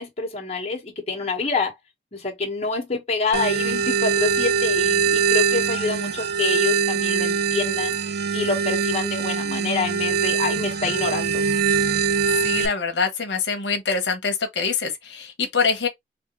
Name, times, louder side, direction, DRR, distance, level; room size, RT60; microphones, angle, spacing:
voice 1, 0.0-1.8 2.1-8.0 8.3-11.4, left 4 dB, 35° left, 1.2 m, -27 dB
sound 1, 3.3-12.7, right 6 dB, 65° right, 0.5 m, -22 dB
voice 2, 12.4-15.9, left 5 dB, 85° left, 0.9 m, -24 dB
3.5 x 2.5 x 3.0 m
head